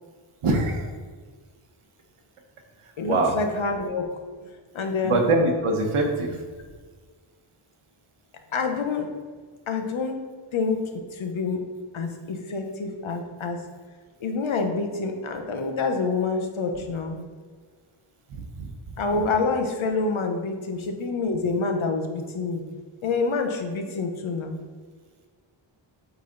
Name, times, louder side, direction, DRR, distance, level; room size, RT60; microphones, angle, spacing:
voice 1, 0.4-0.9 2.8-3.4 5.0-6.4 16.7-16.9 18.3-18.7 19.9-20.1, right 2 dB, 85° right, 2 dB, 1.3 m, -24 dB
voice 2, 3.0-4.1 4.7-5.3 8.5-9.1 9.7-10.2 10.5-11.6 11.9-13.6 14.2-17.2 19.0-22.6 23.0-24.6, left 4 dB, 70° left, 4 dB, 1.1 m, -27 dB
8.2 x 4.1 x 4.0 m, 1.5 s
wide cardioid pair, 90°, 49 cm